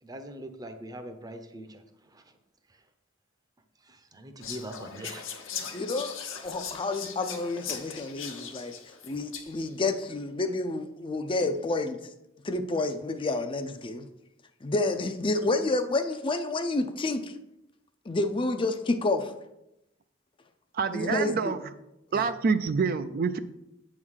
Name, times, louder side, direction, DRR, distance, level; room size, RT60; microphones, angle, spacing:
voice 1, 0.0-2.4 2.7-2.8 3.8-5.3, right 1 dB, 20° right, 7 dB, 0.7 m, -42 dB
Whispering, 4.4-9.7, left 7 dB, 85° left, 1.0 m, -39 dB
voice 2, 5.7-8.7 9.0-11.9 12.5-14.0 14.6-17.2 18.1-19.3 20.9-21.6 22.2-22.3, left 2 dB, 25° left, 7 dB, 0.5 m, -29 dB
voice 3, 20.7-21.6 22.1-23.4, right 5 dB, 50° right, 11 dB, 0.4 m, -27 dB
8.6 x 3.7 x 6.3 m, 0.89 s
head